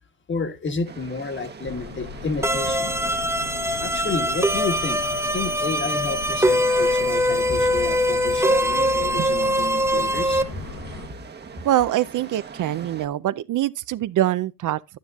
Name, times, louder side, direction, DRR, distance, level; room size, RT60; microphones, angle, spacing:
voice 1, 0.3-2.9 3.8-5.0 5.3-10.4, left 4 dB, 35° left, 1.5 m, -30 dB
sound 1, 0.9-13.1, right 5 dB, 30° right, 1.0 m, -41 dB
sound 2, 1.6-11.1, left 5 dB, 75° left, 6.2 m, -39 dB
sound 3, 2.4-10.4, equal, 10° right, 0.7 m, -22 dB
voice 2, 11.6-15.0, right 13 dB, 65° right, 0.5 m, -24 dB
11.0 x 9.4 x 2.3 m
cardioid pair, 130°, 34 cm